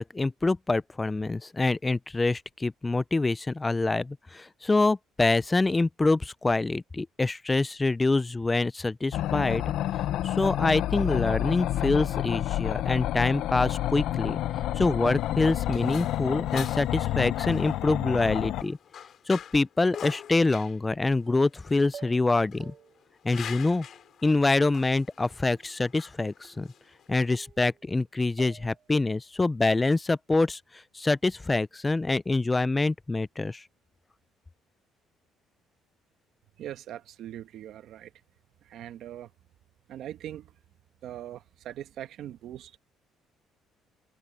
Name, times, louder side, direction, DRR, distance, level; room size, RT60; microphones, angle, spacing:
voice 1, 0.0-9.6 10.2-14.4 14.8-18.8 19.3-22.7 23.2-23.9 24.2-26.7 27.1-30.6 30.9-33.6, left 3 dB, 15° left, 0.4 m, -25 dB
sound 1, 9.1-18.6, left 13 dB, 70° left, 0.6 m, -29 dB
sound 2, 15.0-27.3, left 9 dB, 50° left, 6.0 m, -45 dB
sound 3, 21.3-21.6 21.9-22.3 22.6-23.1 23.7-24.3 24.5-25.2 25.5-26.1 26.4-27.0 27.3-28.0 28.4-28.9, right 8 dB, 45° right, 6.9 m, -51 dB
voice 2, 36.6-38.1 38.6-39.3 39.9-40.5 41.0-42.8, right 11 dB, 65° right, 1.2 m, -41 dB
cardioid pair, 125°, 0 cm